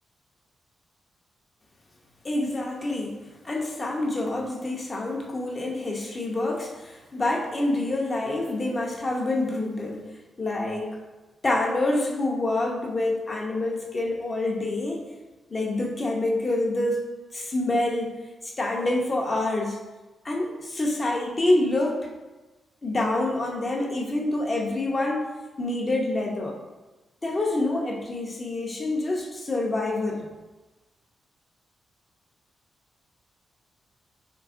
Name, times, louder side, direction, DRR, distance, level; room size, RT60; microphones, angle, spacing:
voice 1, 2.2-3.2 3.4-10.0 10.4-10.9 11.4-15.0 15.5-17.0 17.3-18.2 18.4-19.8 20.2-22.0 22.8-25.3 25.6-26.6 27.2-30.3, left 2 dB, 35° left, -1 dB, 0.5 m, -27 dB
2.7 x 2.3 x 2.4 m, 1.1 s
cardioid pair, 70°, 0 cm